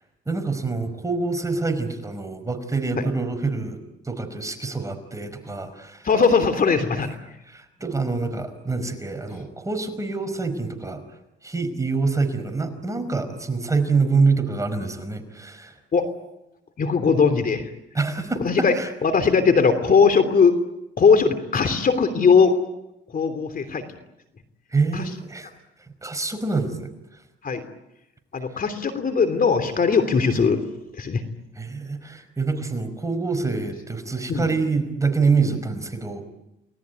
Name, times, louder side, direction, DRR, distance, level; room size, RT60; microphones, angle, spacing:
voice 1, 0.3-3.8 4.0-6.1 7.5-11.0 11.4-15.7 17.9-18.9 24.7-25.5 26.0-26.9 31.5-36.2, right 4 dB, 15° right, 7 dB, 5.2 m, -26 dB
voice 2, 6.0-7.1 15.9-16.1 16.8-17.7 18.4-18.8 19.0-20.6 21.0-22.5 23.1-23.8 24.9-25.0 27.4-27.7 28.3-30.6 31.0-31.2 34.3-34.5 35.4-35.6, left 5 dB, 45° left, 9 dB, 3.2 m, -19 dB
29.5 x 19.5 x 9.5 m, 0.90 s
cardioid pair, 90°, 20 cm